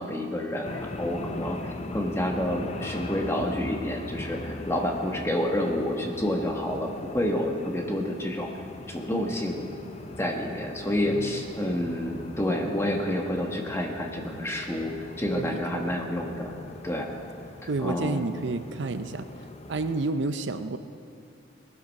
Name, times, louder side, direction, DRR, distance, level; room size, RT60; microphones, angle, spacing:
voice 1, 0.0-9.7 10.2-14.9 15.2-16.5 16.8-17.1 17.6-18.2, left 1 dB, 15° left, 1 dB, 1.3 m, -29 dB
sound 1, 0.6-20.1, left 2 dB, 30° left, 0.6 m, -40 dB
voice 2, 11.1-11.4 15.3-15.9 17.7-19.3 19.7-20.8, right 3 dB, 65° right, 10 dB, 0.5 m, -30 dB
18.5 x 12.0 x 5.4 m, 2.4 s
head